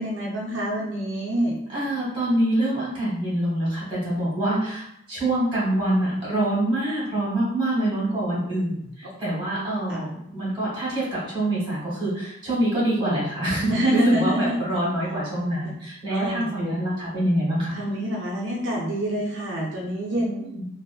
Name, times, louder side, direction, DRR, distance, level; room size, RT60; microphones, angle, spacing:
voice 1, 0.0-1.5 9.0-9.1 9.9-10.0 13.7-14.6 15.6-15.7 16.1-16.8 17.7-20.4, right 1 dB, 80° right, -3 dB, 0.5 m, -26 dB
voice 2, 1.7-17.8 20.1-20.6, right 1 dB, 25° right, -7 dB, 1.2 m, -25 dB
2.4 x 2.4 x 2.3 m, 0.75 s
head